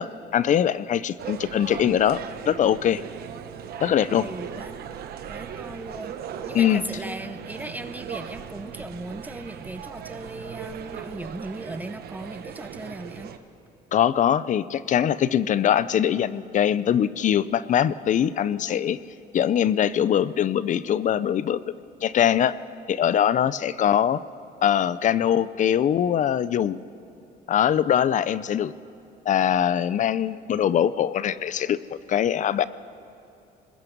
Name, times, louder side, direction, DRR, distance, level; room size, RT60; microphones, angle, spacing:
voice 1, 0.0-3.0 3.8-4.3 6.5-6.8 13.9-19.0 19.3-21.6 22.0-22.5 22.9-24.2 24.6-26.8 27.5-28.7 29.3-32.6, left 9 dB, 45° left, 17 dB, 0.6 m, -22 dB
sound 1, 1.2-13.4, right 8 dB, 65° right, 1.3 m, -38 dB
voice 2, 4.1-4.8 5.3-6.2 6.5-13.3 23.8-24.0, right 1 dB, 10° right, 11 dB, 0.7 m, -37 dB
25.5 x 20.5 x 5.4 m, 2.7 s
cardioid pair, 110°, 17 cm